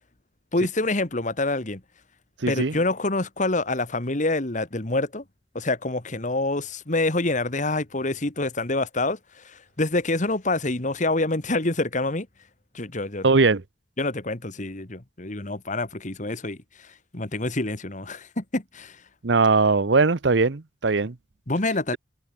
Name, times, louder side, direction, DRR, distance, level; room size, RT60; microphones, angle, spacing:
voice 1, 0.5-1.8 2.5-5.2 5.5-12.3 12.7-13.3 14.0-16.6 17.1-19.0 21.5-22.0, left 2 dB, 40° left, 1.9 m, -26 dB
voice 2, 2.4-2.7 13.2-13.6 19.2-21.1, right 3 dB, 65° right, 0.9 m, -20 dB
head